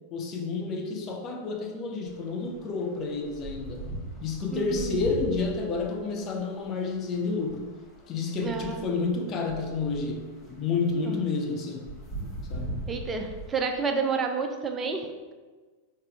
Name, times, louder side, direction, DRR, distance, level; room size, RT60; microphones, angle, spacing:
voice 1, 0.1-3.9 4.2-7.7 8.1-11.9 12.5-12.8, left 4 dB, 30° left, 2 dB, 0.5 m, -30 dB
sound 1, 2.1-2.2 2.5-13.5, right 1 dB, 10° left, 1.3 m, -39 dB
voice 2, 4.5-5.0 8.4-8.9 11.1-11.2 12.9-15.3, right 4 dB, 20° right, 4 dB, 0.5 m, -30 dB
4.1 x 3.6 x 3.5 m, 1.3 s
figure-of-eight pair, 90°, 0 cm